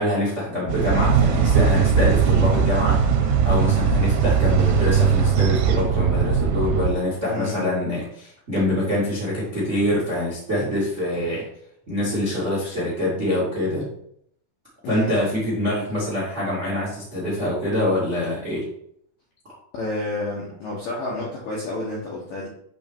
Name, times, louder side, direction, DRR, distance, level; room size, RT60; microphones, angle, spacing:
voice 1, 0.0-11.4 11.9-13.8 14.8-18.6, left 1 dB, 45° right, -6 dB, 0.9 m, -25 dB
sound 1, 0.7-6.9, right 6 dB, 90° right, 3.2 m, -19 dB
voice 2, 7.3-7.7 14.8-15.2 19.7-22.5, left 2 dB, 75° left, -5 dB, 2.1 m, -30 dB
8.3 x 3.3 x 4.6 m, 0.69 s
omnidirectional pair, 5.7 m